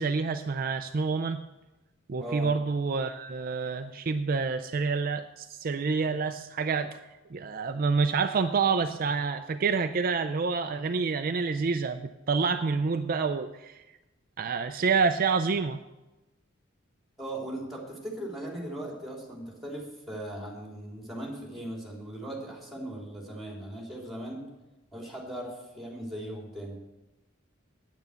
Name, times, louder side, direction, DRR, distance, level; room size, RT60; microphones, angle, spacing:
voice 1, 0.0-1.4 2.1-7.0 7.3-13.8 14.4-15.8, right 4 dB, 45° right, 8 dB, 0.4 m, -28 dB
voice 2, 2.2-2.6 17.2-24.4 24.9-26.8, right 1 dB, ahead, -2 dB, 3.4 m, -38 dB
9.4 x 9.0 x 7.0 m, 1.1 s
head